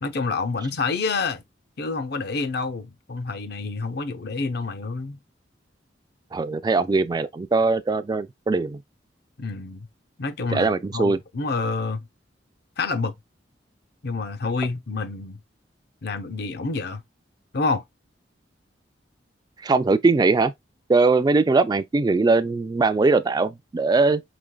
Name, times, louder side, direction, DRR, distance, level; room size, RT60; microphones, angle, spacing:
voice 1, 0.0-1.4 1.8-5.2 9.4-9.9 10.2-12.1 12.8-13.1 14.0-15.4 16.0-17.0 17.5-17.8, left 4 dB, 65° left, 0.7 m, -28 dB
voice 2, 6.3-8.8 10.5-11.2 19.6-20.5 20.9-24.2, right 3 dB, 25° right, 0.3 m, -21 dB
5.0 x 3.8 x 2.2 m
head